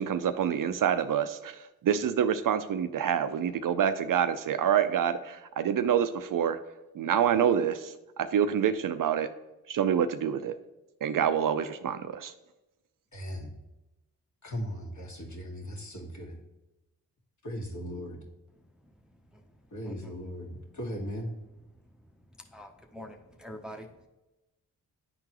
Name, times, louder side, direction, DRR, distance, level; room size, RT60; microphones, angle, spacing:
voice 1, 0.0-6.6 6.9-9.3 9.7-10.6 11.0-12.3, right 8 dB, 60° right, 10 dB, 0.5 m, -27 dB
voice 2, 13.1-13.5 14.4-16.4 17.4-18.2 19.7-21.3, equal, 50° left, 0 dB, 1.6 m, -38 dB
voice 3, 18.6-19.5 19.8-20.1 21.9-24.1, equal, ahead, 3 dB, 0.7 m, -47 dB
9.8 x 3.8 x 3.0 m, 0.99 s
supercardioid pair, 45°, 38 cm